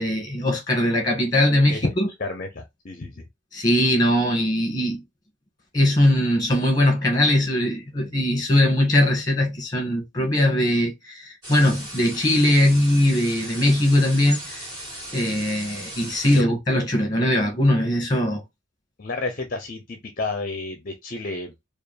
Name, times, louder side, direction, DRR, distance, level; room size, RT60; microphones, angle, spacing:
voice 1, 0.0-2.1 3.5-5.0 5.7-14.7 15.1-18.4, left 1 dB, 20° left, 1.7 m, -20 dB
voice 2, 2.2-3.2 16.3-16.5 17.1-17.3 17.8-17.9 19.0-21.5, left 3 dB, 40° left, 0.6 m, -31 dB
sound 1, 11.4-16.4, right 1 dB, 25° right, 2.4 m, -37 dB
4.5 x 2.4 x 3.2 m
head